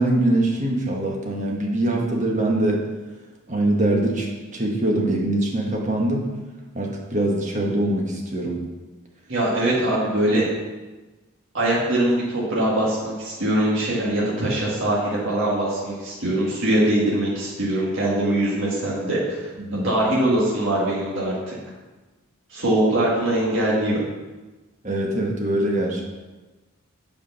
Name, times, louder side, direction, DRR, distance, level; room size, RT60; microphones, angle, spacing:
voice 1, 0.0-2.9 3.5-6.3 6.7-8.6 19.7-19.9 24.8-26.0, right 1 dB, 35° right, -1 dB, 1.4 m, -23 dB
voice 2, 9.3-10.5 11.5-21.6 22.5-24.0, right 1 dB, 60° right, -6 dB, 1.8 m, -22 dB
8.3 x 5.0 x 5.6 m, 1.2 s
head